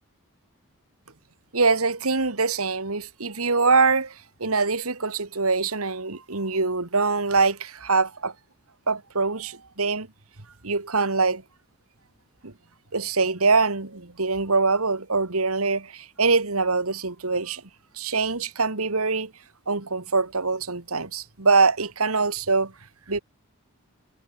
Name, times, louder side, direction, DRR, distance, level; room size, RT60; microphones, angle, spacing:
voice 1, 1.5-4.1 4.4-8.3 8.9-10.1 10.6-11.4 12.4-12.5 12.9-17.6 18.0-19.3 19.7-22.7 23.1-23.2, right 4 dB, 80° right, 2.3 m, -23 dB
head